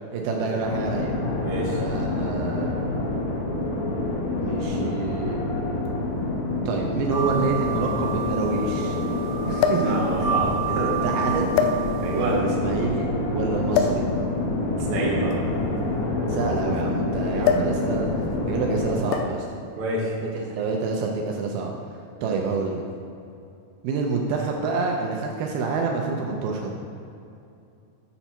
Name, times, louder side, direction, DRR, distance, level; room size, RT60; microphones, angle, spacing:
voice 1, 0.1-1.1 1.8-2.8 4.4-5.4 6.7-9.0 9.5-10.4 10.7-11.5 12.1-14.0 16.3-18.1 18.5-19.5 20.2-21.7 22.2-22.8 23.8-26.7, right 4 dB, 80° right, 1 dB, 2.3 m, -28 dB
sound 1, 0.6-19.0, left 2 dB, 75° left, 2.9 m, -27 dB
voice 2, 1.4-1.8 9.8-10.5 10.7-10.9 12.0-12.4 14.8-15.4 17.3-17.5 19.8-20.1 22.2-22.4, right 2 dB, 60° right, -4 dB, 1.7 m, -28 dB
sound 2, 5.9-6.0 7.0-7.1 7.4-7.5 9.6-10.0 10.8-11.0 11.5-12.2 13.7-14.1 15.2-16.8 17.4-17.8 18.1-18.4 19.1-19.5 20.5-20.7, left 6 dB, 90° left, 2.6 m, -25 dB
sound 3, 7.1-12.3, right 6 dB, 45° left, 1.0 m, -30 dB
7.0 x 5.5 x 4.3 m, 2.6 s
omnidirectional pair, 4.5 m